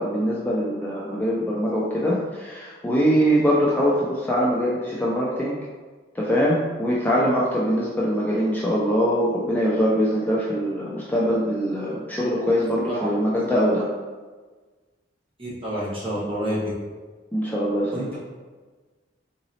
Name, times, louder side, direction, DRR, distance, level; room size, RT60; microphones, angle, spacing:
voice 1, 0.0-5.6 6.1-13.9 17.3-18.1, equal, 10° left, -6 dB, 0.4 m, -23 dB
voice 2, 15.4-16.7 17.9-18.2, equal, 30° right, -8 dB, 1.2 m, -28 dB
3.8 x 3.0 x 2.7 m, 1.4 s
head